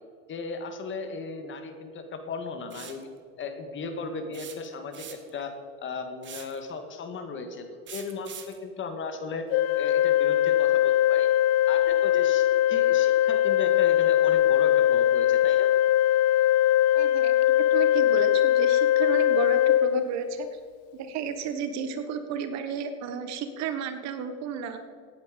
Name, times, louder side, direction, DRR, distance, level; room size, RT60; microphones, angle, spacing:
voice 1, 0.3-3.1 3.4-5.6 5.8-9.4 9.8-11.3 11.7-15.7, left 4 dB, 40° left, 6 dB, 1.9 m, -36 dB
sound 1, 2.7-3.0 4.3-5.4 6.2-6.6 7.9-8.6, right 8 dB, 35° right, 1.7 m, -42 dB
Organ, 9.5-20.5, left 12 dB, 55° left, 0.5 m, -21 dB
voice 2, 16.9-20.6 20.9-24.8, right 6 dB, 60° right, 9 dB, 1.5 m, -33 dB
17.0 x 9.2 x 5.2 m, 2.1 s
supercardioid pair, 110°, 31 cm